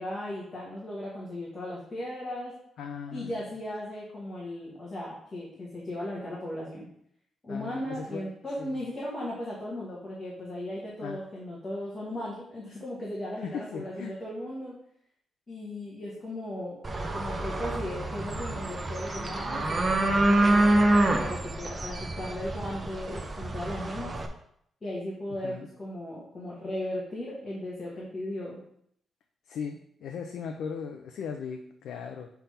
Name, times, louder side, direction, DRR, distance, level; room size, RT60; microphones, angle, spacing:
voice 1, 0.0-2.5 3.1-6.9 7.4-14.8 15.5-16.8 17.1-24.2 24.8-25.5 25.8-28.6, left 1 dB, 25° left, -6 dB, 1.4 m, -36 dB
voice 2, 2.8-3.4 7.5-8.9 11.0-11.2 13.4-14.1 25.3-25.7 29.5-32.3, left 6 dB, 90° left, 4 dB, 0.5 m, -38 dB
sound 1, 16.8-24.3, right 1 dB, 20° right, 0.6 m, -27 dB
5.7 x 3.5 x 5.5 m, 0.70 s
wide cardioid pair, 170°, 0 cm